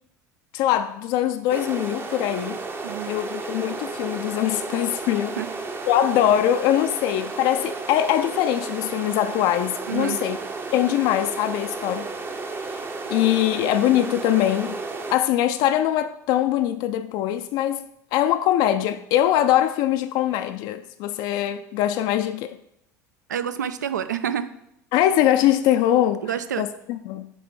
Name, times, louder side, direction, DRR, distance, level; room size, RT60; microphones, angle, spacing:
voice 1, 0.5-2.6 3.1-5.4 5.9-10.4 10.7-12.1 13.1-14.8 15.1-17.8 18.1-22.6 24.9-26.2 26.6-27.3, left 12 dB, 50° left, 0.3 m, -22 dB
sound 1, 1.5-15.2, right 3 dB, 20° right, 0.6 m, -33 dB
voice 2, 9.9-10.2 23.3-24.5 26.2-26.6, right 9 dB, 75° right, 0.4 m, -28 dB
7.7 x 3.3 x 4.4 m
figure-of-eight pair, 65°, 10 cm